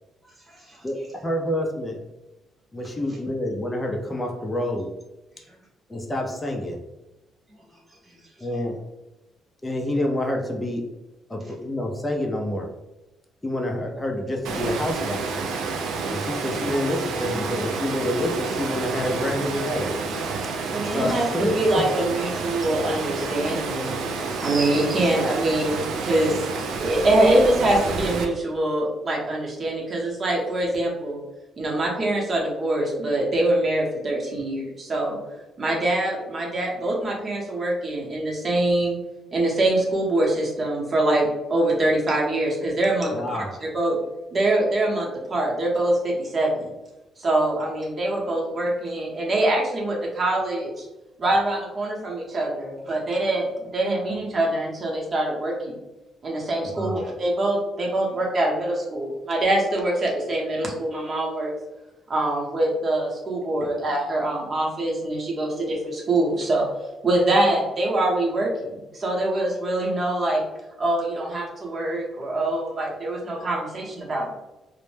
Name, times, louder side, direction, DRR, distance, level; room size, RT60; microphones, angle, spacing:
voice 1, 0.2-0.9 3.1-3.2 5.4-5.6 7.5-8.5 25.0-25.2 26.9-27.0 63.6-63.7, right 1 dB, 15° right, -6 dB, 0.8 m, -51 dB
voice 2, 1.2-2.0 2.7-4.9 5.9-6.8 8.4-8.8 9.6-10.8 11.3-12.7 13.4-15.3 16.1-20.0 20.8-21.9 43.1-43.6 56.8-57.1, left 1 dB, 20° left, 1 dB, 0.4 m, -27 dB
Water, 14.4-28.2, right 4 dB, 85° right, 0.3 m, -29 dB
voice 3, 20.7-24.0 24.4-31.2 31.6-35.2 35.6-39.0 39.3-43.1 43.6-44.0 44.3-46.7 47.2-50.8 51.2-55.8 56.2-61.5 62.1-66.7 67.0-70.4 70.8-74.3, right 1 dB, 40° right, -2 dB, 0.8 m, -24 dB
2.1 x 2.0 x 3.1 m, 1.0 s
cardioid pair, 90°, 0 cm